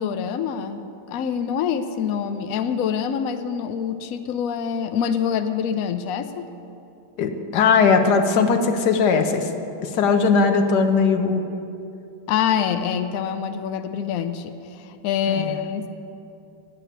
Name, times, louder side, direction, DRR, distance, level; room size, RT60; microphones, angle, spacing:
voice 1, 0.0-6.5 12.3-15.9, left 8 dB, 80° left, 8 dB, 0.7 m, -25 dB
voice 2, 7.2-9.5 9.8-11.4 15.3-15.5, left 5 dB, 65° left, 6 dB, 1.3 m, -19 dB
10.0 x 7.0 x 9.2 m, 2.6 s
omnidirectional pair, 2.1 m